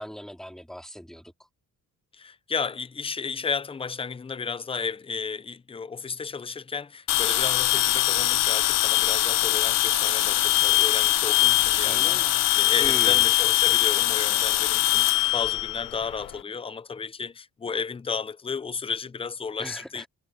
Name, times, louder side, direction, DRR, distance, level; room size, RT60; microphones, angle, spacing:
voice 1, 0.0-1.3 11.8-12.5 12.8-13.3 19.6-20.1, equal, ahead, 3.5 m, -39 dB
voice 2, 2.1-20.1, left 5 dB, 15° left, 0.5 m, -33 dB
sound 1, 7.1-16.3, left 14 dB, 75° left, 0.5 m, -22 dB
wide cardioid pair, 150°, 33 cm